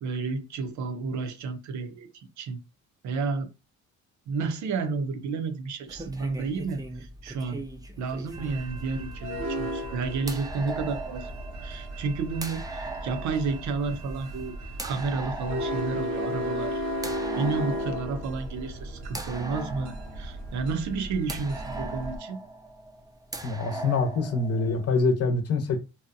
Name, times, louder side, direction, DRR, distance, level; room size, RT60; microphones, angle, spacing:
voice 1, 0.0-2.6 3.0-3.5 4.3-7.6 8.0-11.3 11.6-14.6 14.8-16.8 17.3-22.4, right 4 dB, 70° right, 0.6 m, -31 dB
sound 1, 5.9-25.0, right 2 dB, 10° right, 0.4 m, -40 dB
sound 2, 8.3-22.2, equal, 90° right, 0.9 m, -35 dB
voice 2, 23.4-25.8, left 4 dB, 55° left, 0.7 m, -25 dB
2.7 x 2.1 x 2.5 m
cardioid pair, 90°, 30 cm